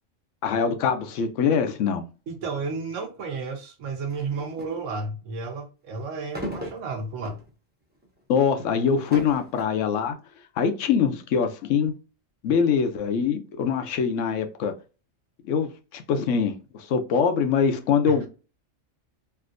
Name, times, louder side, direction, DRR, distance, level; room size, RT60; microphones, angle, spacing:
voice 1, 0.4-2.1 8.3-10.2 10.6-11.9 12.4-14.7 15.5-18.3, left 6 dB, 80° left, 1.0 m, -23 dB
voice 2, 2.3-7.5 18.1-18.2, right 4 dB, 80° right, 1.2 m, -32 dB
sound 1, 4.1-4.8 6.3-7.5 8.0-8.2 8.9-9.6, equal, 10° right, 0.7 m, -36 dB
3.3 x 2.7 x 2.5 m
omnidirectional pair, 1.3 m